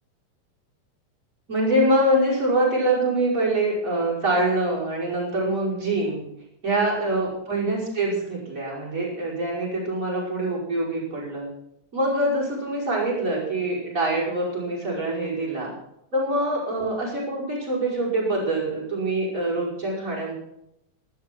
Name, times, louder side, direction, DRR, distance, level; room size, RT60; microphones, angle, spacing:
voice 1, 1.5-6.2 6.6-11.5 11.9-15.7 16.1-20.3, right 1 dB, 25° right, -5 dB, 6.1 m, -24 dB
13.5 x 12.0 x 6.1 m, 0.79 s
omnidirectional pair, 3.6 m